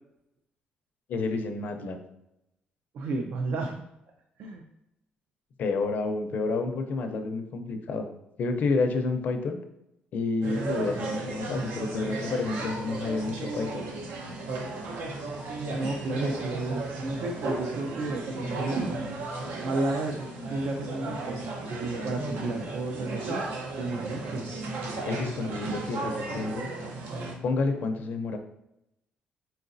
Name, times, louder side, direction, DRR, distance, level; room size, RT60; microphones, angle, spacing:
voice 1, 1.1-2.0 5.6-8.1 8.4-9.6 10.1-13.9 25.0-26.7 27.4-28.4, left 3 dB, 55° left, 5 dB, 0.5 m, -29 dB
voice 2, 2.9-3.8 4.4-4.6 15.7-18.8 19.6-21.5 21.8-23.4 23.8-24.5, right 2 dB, 60° right, 3 dB, 0.5 m, -32 dB
sound 1, 10.4-27.3, right 2 dB, 85° right, 0.8 m, -34 dB
4.4 x 3.9 x 2.6 m, 0.84 s
cardioid pair, 150°, 4 cm